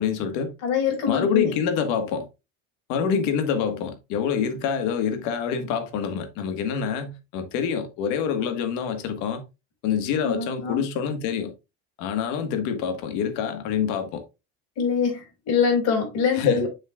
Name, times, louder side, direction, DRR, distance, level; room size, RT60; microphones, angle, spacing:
voice 1, 0.0-0.5 1.1-2.3 2.9-9.4 9.8-11.5 12.0-14.2 16.3-16.6, left 7 dB, 75° left, 1.6 m, -26 dB
voice 2, 0.6-1.5 10.2-10.8 14.8-16.7, left 6 dB, 60° left, 4.7 m, -24 dB
7.5 x 6.6 x 2.5 m
cardioid pair, 165°, 29 cm